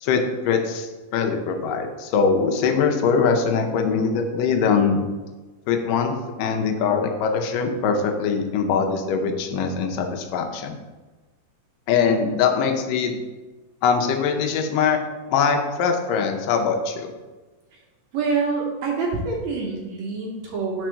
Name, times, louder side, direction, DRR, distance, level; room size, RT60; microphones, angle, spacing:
voice 1, 0.0-5.0 5.7-10.8 11.9-13.2 13.8-15.0 15.3-17.1, left 5 dB, 85° left, 4 dB, 2.4 m, -22 dB
voice 2, 18.1-20.9, right 4 dB, 70° right, -1 dB, 1.9 m, -26 dB
5.3 x 4.5 x 6.2 m, 1.2 s
omnidirectional pair, 3.8 m